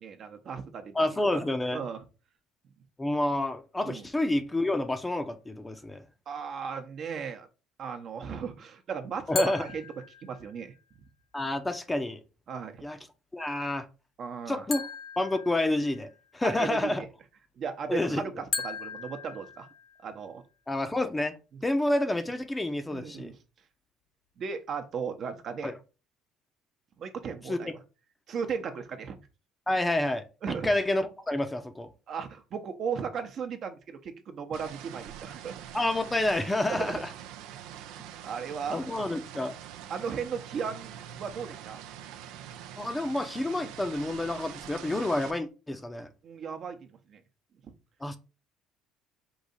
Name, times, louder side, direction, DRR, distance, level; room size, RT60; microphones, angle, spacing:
voice 1, 0.0-1.4 1.7-2.0 3.8-4.0 6.3-7.5 7.8-9.8 10.2-10.7 12.5-12.8 14.2-14.7 16.4-17.1 17.6-19.7 20.0-20.4 21.5-21.6 22.9-23.4 24.4-25.7 27.0-27.8 28.3-29.2 30.4-30.7 32.1-35.6 36.7-37.0 38.0-39.0 39.9-40.9 41.2-41.8 46.2-47.2, right 6 dB, 50° right, 0.8 m, -36 dB
voice 2, 0.9-1.8 3.0-6.0 9.3-9.6 11.3-12.2 12.8-13.0 13.3-13.9 14.5-14.8 15.2-17.0 17.9-18.2 20.7-21.3 21.6-23.3 25.6-25.7 27.5-27.6 29.7-30.2 30.6-31.9 35.7-37.1 38.7-39.5 42.8-46.1 48.0-48.2, left 1 dB, 15° left, 0.6 m, -29 dB
sound 1, 9.4-10.7 14.7-16.2 18.5-20.2, left 5 dB, 50° left, 0.9 m, -38 dB
sound 2, 34.5-45.3, right 10 dB, 80° right, 0.5 m, -44 dB
4.8 x 2.7 x 4.0 m
supercardioid pair, 90°, 0 cm